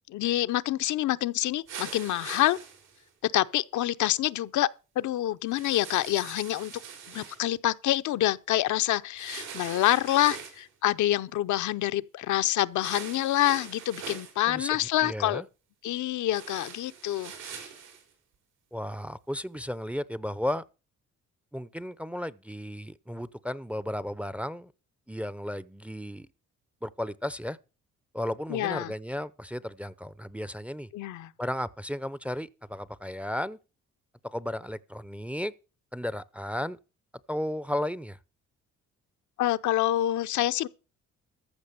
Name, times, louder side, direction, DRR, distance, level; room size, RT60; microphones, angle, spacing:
voice 1, 0.1-2.6 3.2-4.7 5.0-6.7 7.1-15.4 15.8-17.6 28.5-28.9 30.9-31.3 39.4-40.7, left 14 dB, 75° left, 0.6 m, -27 dB
sound 1, 1.7-3.0 5.5-7.4 9.2-10.7 12.8-14.3 16.3-18.0, right 7 dB, 90° right, 4.6 m, -42 dB
voice 2, 14.5-15.4 18.7-20.6 21.5-24.7 25.1-26.3 26.8-27.6 28.1-30.9 31.4-33.6 34.2-35.5 35.9-36.8 37.3-38.2, left 1 dB, 5° right, 0.5 m, -34 dB
14.0 x 5.9 x 6.7 m
cardioid pair, 90°, 30 cm